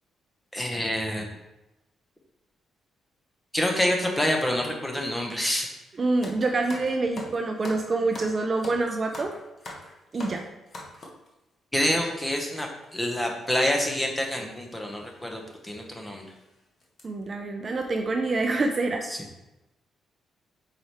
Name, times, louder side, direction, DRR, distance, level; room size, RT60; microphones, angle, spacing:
voice 1, 0.5-1.3 3.5-5.7 11.7-16.2 19.1-19.2, left 1 dB, 10° left, 2 dB, 0.8 m, -27 dB
voice 2, 6.0-9.3 10.1-10.4 17.0-19.0, right 3 dB, 25° right, 3 dB, 0.4 m, -26 dB
sound 1, 6.2-11.3 12.0-12.2 12.9-13.0 13.2-13.4 14.4-14.6 15.0-15.1 15.7-15.8 16.2-16.4 16.8-17.0, left 2 dB, 30° left, 1.0 m, -42 dB
4.8 x 4.7 x 4.2 m, 0.98 s
cardioid pair, 175°, 0 cm